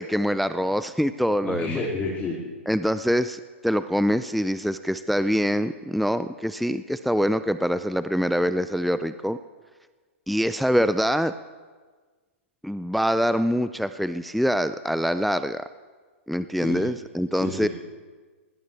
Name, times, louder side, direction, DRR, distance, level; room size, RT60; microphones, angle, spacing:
voice 1, 0.0-1.8 2.7-9.4 10.3-11.3 12.6-15.6 16.3-17.7, equal, ahead, 12 dB, 0.3 m, -24 dB
voice 2, 1.4-2.4 16.5-16.9 17.3-17.7, left 4 dB, 25° left, -4 dB, 2.9 m, -30 dB
21.0 x 17.0 x 3.4 m, 1.4 s
hypercardioid pair, 115°, 7 cm